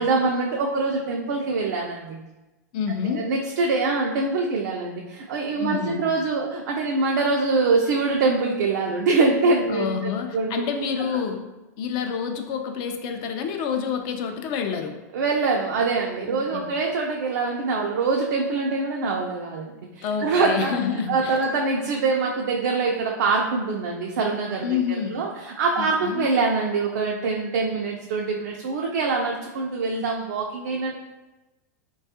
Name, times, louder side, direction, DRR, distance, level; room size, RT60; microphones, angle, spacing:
voice 1, 0.0-2.2 3.1-10.5 15.1-20.8 21.1-24.7 25.1-30.9, right 3 dB, 75° right, -1 dB, 0.4 m, -24 dB
voice 2, 2.7-3.2 5.6-6.0 9.7-11.5 11.8-15.0 16.3-16.7 20.0-21.4 24.6-25.2 25.8-26.3, left 7 dB, 45° left, 5 dB, 0.3 m, -28 dB
3.4 x 2.2 x 2.7 m, 1.1 s
hypercardioid pair, 125°, 9 cm